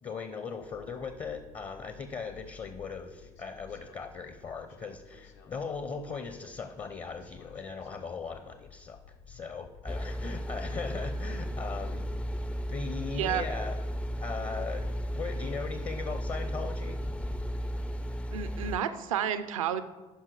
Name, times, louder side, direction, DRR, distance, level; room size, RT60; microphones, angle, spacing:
voice 1, 0.0-9.0 9.3-12.0 12.7-13.8 14.2-17.0, left 5 dB, 35° left, 9 dB, 0.7 m, -39 dB
sound 1, 0.6-17.1, left 6 dB, 70° left, 1.0 m, -54 dB
sound 2, 9.9-18.8, equal, 5° left, 0.4 m, -34 dB
voice 2, 13.1-13.5 18.3-19.8, right 9 dB, 80° right, 11 dB, 0.5 m, -30 dB
10.0 x 5.6 x 4.8 m, 1.2 s
hypercardioid pair, 60°, 17 cm